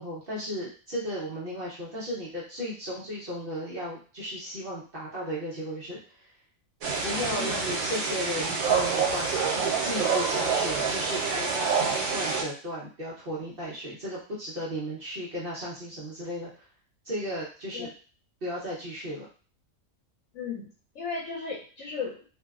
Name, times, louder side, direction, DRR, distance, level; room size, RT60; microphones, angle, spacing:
voice 1, 0.0-6.3 7.0-16.7 17.0-17.9 18.4-19.3, equal, 50° right, -6 dB, 0.8 m, -35 dB
sound 1, 6.8-12.4, right 5 dB, 85° right, 1.0 m, -27 dB
voice 2, 7.1-7.7 17.7-17.9 20.3-20.7 20.9-22.2, left 5 dB, 70° left, -5 dB, 1.0 m, -35 dB
2.6 x 2.0 x 2.3 m, 0.39 s
omnidirectional pair, 1.4 m